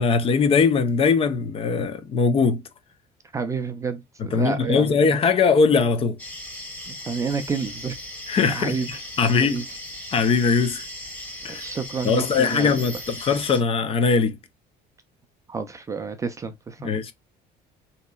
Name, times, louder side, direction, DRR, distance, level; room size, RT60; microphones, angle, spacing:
voice 1, 0.0-2.6 4.2-6.2 8.3-9.6 10.1-10.8 11.4-11.6 12.0-14.4 16.8-17.1, left 5 dB, 35° left, 0.5 m, -21 dB
voice 2, 3.3-5.2 6.9-8.0 8.5-8.9 9.5-9.6 11.5-12.8 15.5-17.0, right 5 dB, 20° right, 0.4 m, -29 dB
sound 1, 6.2-13.6, left 1 dB, 10° left, 1.1 m, -37 dB
4.0 x 2.9 x 2.2 m
cardioid pair, 155°, 17 cm